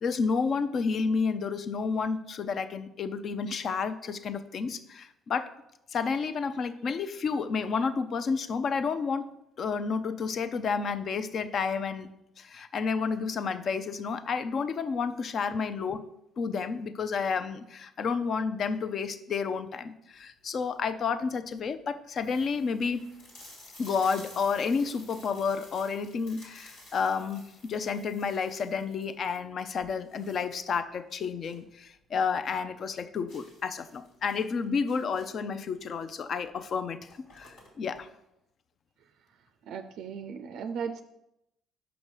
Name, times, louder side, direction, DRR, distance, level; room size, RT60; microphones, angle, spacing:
voice 1, 0.0-5.5 5.9-9.3 9.6-12.1 12.4-16.0 16.4-23.0 23.8-37.1 37.3-38.1, left 5 dB, 55° left, 12 dB, 0.5 m, -30 dB
sound 1, 20.3-20.8 21.4-21.5 21.7-21.8 22.1-31.7 32.0-32.1 32.5-32.6 33.3-35.5 36.5-36.6 36.9-38.0, left 1 dB, 80° left, 2.3 m, -53 dB
voice 2, 39.7-41.0, right 6 dB, 70° right, 8 dB, 0.4 m, -36 dB
6.0 x 5.2 x 4.7 m, 0.83 s
hypercardioid pair, 55°, 0 cm